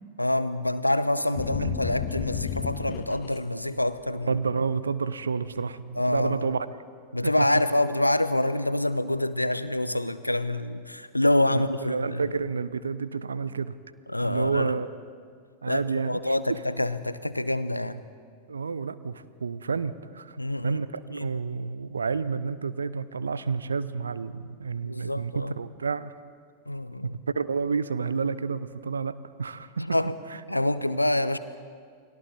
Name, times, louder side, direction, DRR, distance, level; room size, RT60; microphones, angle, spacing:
voice 1, 0.2-4.3 6.0-6.5 7.1-12.2 14.1-14.8 15.7-18.0 20.4-20.8 21.1-21.3 24.8-25.5 26.7-27.2 29.8-30.1 30.5-31.4, left 1 dB, 85° left, 13 dB, 0.8 m, -26 dB
sound 1, 1.4-3.4 3.8-4.3, left 9 dB, 40° left, 1.3 m, -32 dB
voice 2, 4.3-6.6 7.2-7.5 11.5-13.7 14.2-14.9 15.6-16.6 18.5-20.4 20.6-26.1 27.0-30.0 30.3-30.4, right 5 dB, 75° right, 14 dB, 0.7 m, -30 dB
29.5 x 22.0 x 4.2 m, 2.1 s
figure-of-eight pair, 90°, 0 cm